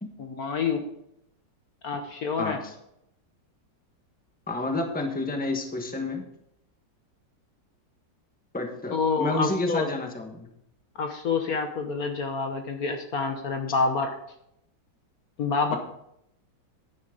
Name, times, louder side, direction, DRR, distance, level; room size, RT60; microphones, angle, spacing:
voice 1, 0.2-0.9 1.8-2.6 8.9-9.9 11.0-14.1 15.4-15.8, left 4 dB, 60° left, 5 dB, 1.3 m, -27 dB
voice 2, 2.4-2.7 4.5-6.2 8.5-10.5 15.7-15.8, left 2 dB, 5° left, 3 dB, 1.1 m, -30 dB
10.5 x 10.0 x 3.9 m, 0.78 s
omnidirectional pair, 2.0 m